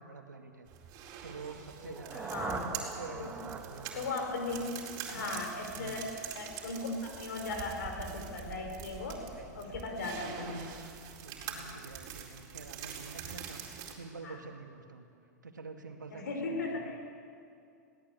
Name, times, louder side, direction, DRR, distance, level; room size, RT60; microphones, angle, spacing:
voice 1, 0.1-0.7 1.2-2.4 2.7-4.1 4.5-4.8 5.1-5.4 5.7-6.0 9.1-9.8 11.2-15.1 15.4-17.0, right 4 dB, 85° right, 4 dB, 2.3 m, -48 dB
sound 1, 0.7-13.9, right 8 dB, 40° right, 4.4 m, -45 dB
sound 2, 1.7-5.7, right 4 dB, 20° right, 2.3 m, -43 dB
voice 2, 2.1-2.7 3.2-3.3 3.9-4.7 5.1-9.3 9.5-10.7 11.4-11.7 14.2-14.3 16.1-16.9, left 3 dB, 70° left, 4 dB, 4.9 m, -37 dB
22.0 x 17.5 x 8.5 m, 2.4 s
hypercardioid pair, 100°, 10 cm